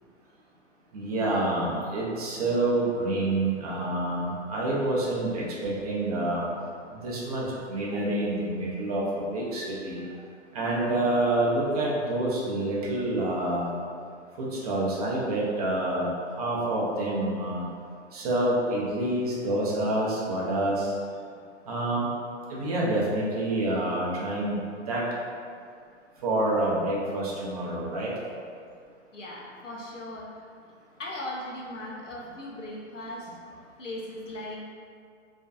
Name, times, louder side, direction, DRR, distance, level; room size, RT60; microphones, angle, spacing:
voice 1, 0.9-6.5 7.0-10.0 10.5-13.8 14.4-16.1 16.4-17.6 18.1-20.9 21.7-22.1 22.5-24.6 24.9-25.0 26.2-28.1, right 1 dB, 35° right, -5 dB, 0.4 m, -27 dB
voice 2, 29.1-30.4 31.0-33.3 33.8-34.6, left 1 dB, 85° left, -4 dB, 0.6 m, -38 dB
2.5 x 2.2 x 2.3 m, 2.2 s
figure-of-eight pair, 110°, 37 cm